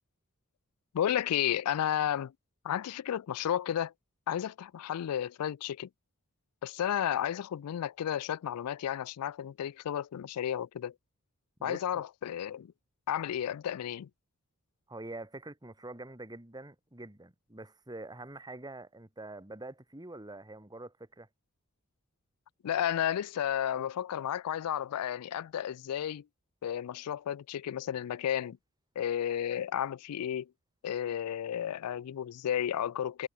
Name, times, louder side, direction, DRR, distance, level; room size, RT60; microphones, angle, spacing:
voice 1, 0.9-2.3 2.6-3.9 4.3-5.9 6.6-10.9 11.6-12.7 13.1-14.1 22.6-26.2 26.6-28.6 29.0-30.5 30.8-33.3, left 10 dB, 85° left, 0.4 m, -32 dB
voice 2, 11.6-12.0 14.9-21.3, right 2 dB, 20° right, 2.1 m, -45 dB
head